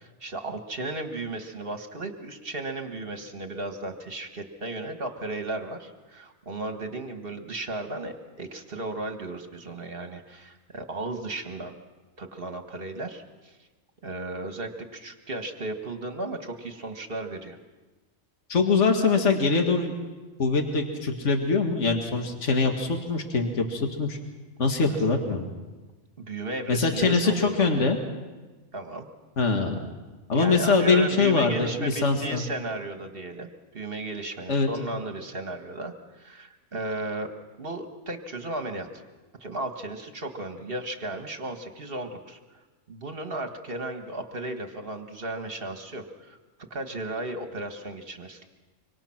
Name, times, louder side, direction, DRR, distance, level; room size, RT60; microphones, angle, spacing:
voice 1, 0.0-11.7 12.2-13.6 14.0-17.6 24.8-25.0 26.2-27.8 28.7-29.1 30.3-33.5 33.7-37.3 37.6-39.0 39.4-42.4 42.9-46.4 46.7-48.5, right 2 dB, 45° right, 5 dB, 1.9 m, -35 dB
voice 2, 18.5-19.9 20.4-24.2 24.6-25.5 26.7-28.0 29.4-29.8 30.3-32.4 34.5-34.7, left 4 dB, 60° left, 3 dB, 2.2 m, -23 dB
25.5 x 25.0 x 6.0 m, 1.2 s
omnidirectional pair, 1.4 m